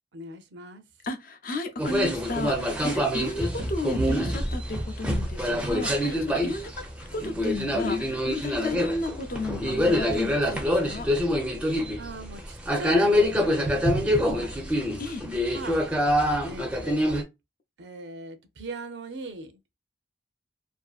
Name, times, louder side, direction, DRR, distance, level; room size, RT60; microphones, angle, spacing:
voice 1, 0.1-0.8 2.8-2.9 5.9-6.2 11.9-14.6 15.5-15.8 16.5-17.2 17.8-19.5, right 2 dB, 75° right, 0.6 m, -40 dB
voice 2, 1.0-11.1 15.0-15.3, left 2 dB, 50° left, 0.5 m, -34 dB
sound 1, 1.8-17.2, left 1 dB, 5° right, 0.4 m, -25 dB
2.6 x 2.5 x 2.3 m
head